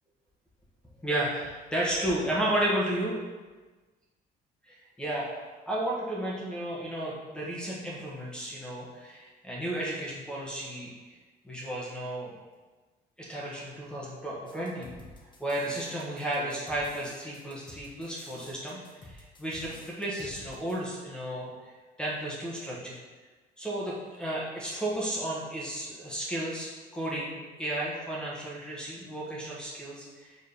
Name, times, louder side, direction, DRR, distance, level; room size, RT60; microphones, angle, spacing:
voice 1, 1.0-3.1 4.7-10.9 11.4-12.3 13.2-14.9 15.4-21.7 22.0-23.0 23.6-30.4, right 1 dB, 5° left, -6 dB, 1.3 m, -33 dB
sound 1, 14.5-20.8, left 2 dB, 25° left, 1.2 m, -50 dB
4.7 x 3.9 x 5.1 m, 1.3 s
cardioid pair, 110°, 17 cm